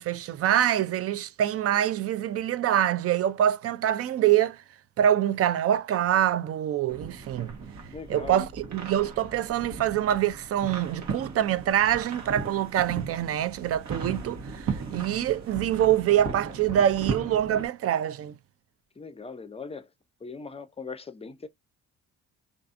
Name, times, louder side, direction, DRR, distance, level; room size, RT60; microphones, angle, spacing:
voice 1, 0.0-4.6 5.0-7.5 8.1-18.3, right 11 dB, 50° right, 0.4 m, -25 dB
sound 1, 6.9-17.7, right 5 dB, 70° right, 1.1 m, -37 dB
voice 2, 7.9-8.5 19.0-19.9 20.2-21.5, left 4 dB, 20° left, 0.5 m, -40 dB
2.6 x 2.4 x 2.4 m
cardioid pair, 90°, 30 cm